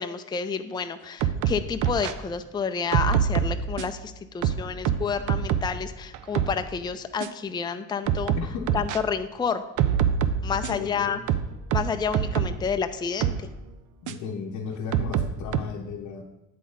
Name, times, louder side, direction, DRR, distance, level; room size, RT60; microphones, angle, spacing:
voice 1, 0.0-8.3 8.7-9.6 10.4-11.2 11.7-13.5, left 6 dB, 15° left, 8 dB, 0.4 m, -29 dB
sound 1, 1.2-2.1 2.9-4.0 4.4-5.8 6.1-6.6 7.2-7.3 8.1-9.0 9.8-10.9 11.3-12.6 13.2-13.4 14.1-14.2 14.9-15.6, right 8 dB, 85° right, 0.5 m, -25 dB
voice 2, 8.3-8.7 10.5-11.3 12.4-12.5 14.0-16.2, left 5 dB, 75° left, 0 dB, 0.7 m, -35 dB
8.5 x 3.9 x 5.3 m, 0.98 s
cardioid pair, 90°, 30 cm